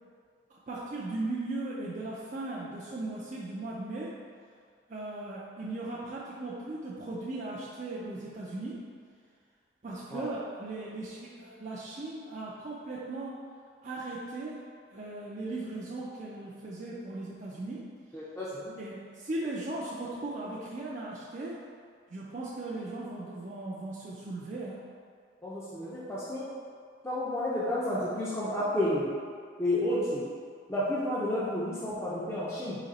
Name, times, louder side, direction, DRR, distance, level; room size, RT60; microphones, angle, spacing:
voice 1, 0.5-4.2 4.9-8.9 9.8-13.4 13.8-14.7 14.9-17.9 18.8-21.6 22.1-24.8, right 2 dB, 40° right, -6 dB, 0.4 m, -38 dB
voice 2, 18.1-18.7 25.4-26.4 27.0-29.1 29.6-30.2 30.7-32.8, left 1 dB, 15° left, -10 dB, 0.5 m, -31 dB
4.0 x 2.8 x 4.0 m, 2.1 s
head